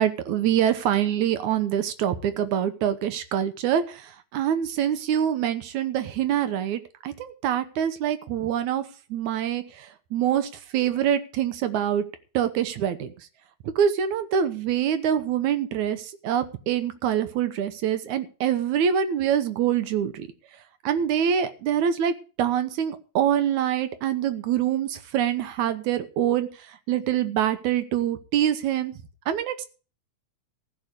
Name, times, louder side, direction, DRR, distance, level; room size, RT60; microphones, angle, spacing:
voice 1, 0.0-8.8 9.1-12.1 12.3-13.1 13.6-20.3 20.8-28.9 29.3-29.7, right 9 dB, 75° right, 10 dB, 2.4 m, -25 dB
15.5 x 5.1 x 8.3 m, 0.36 s
omnidirectional pair, 3.5 m